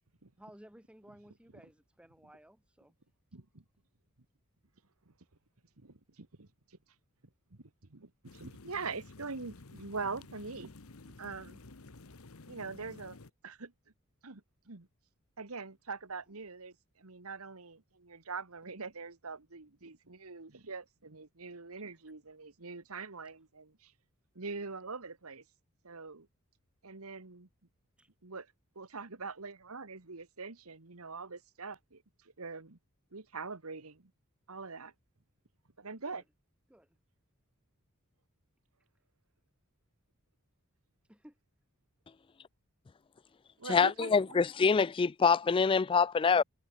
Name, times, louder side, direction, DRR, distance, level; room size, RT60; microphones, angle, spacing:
voice 1, 0.4-2.9 16.3-16.4 28.0-28.1 36.1-36.2 36.7-37.0 41.1-41.4 46.3-46.4, equal, 5° right, 1.7 m, -57 dB
voice 2, 3.3-3.6 5.8-6.5 7.5-7.6 7.9-10.7 11.0-11.6 12.5-13.2 13.4-13.7 14.2-14.4 14.7-14.9 15.4-23.9 24.3-25.4 25.8-26.3 26.8-27.5 28.2-28.5 28.7-32.8 33.1-34.0 34.5-34.9 35.8-36.2 43.6-44.4, right 4 dB, 80° right, 1.7 m, -43 dB
sound 1, 8.2-13.3, left 3 dB, 80° left, 1.2 m, -52 dB
voice 3, 43.7-46.4, left 5 dB, 25° left, 0.3 m, -25 dB
head